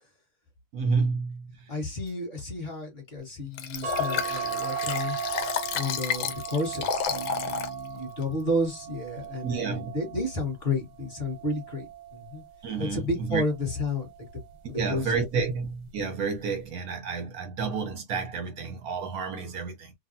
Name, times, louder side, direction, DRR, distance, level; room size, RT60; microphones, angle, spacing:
voice 1, 0.7-1.5 9.4-9.9 12.6-13.4 14.7-19.9, right 4 dB, 65° right, 0.9 m, -30 dB
voice 2, 1.7-5.2 5.7-12.4 12.8-14.4 14.7-15.1, left 2 dB, 35° left, 1.3 m, -32 dB
Liquid, 3.6-7.7 8.2-8.3, left 8 dB, 75° left, 1.2 m, -31 dB
sound 1, 3.8-10.5 11.1-12.5 13.7-14.2 14.5-14.6, right 7 dB, 90° right, 1.6 m, -36 dB
3.3 x 2.3 x 2.6 m
omnidirectional pair, 2.3 m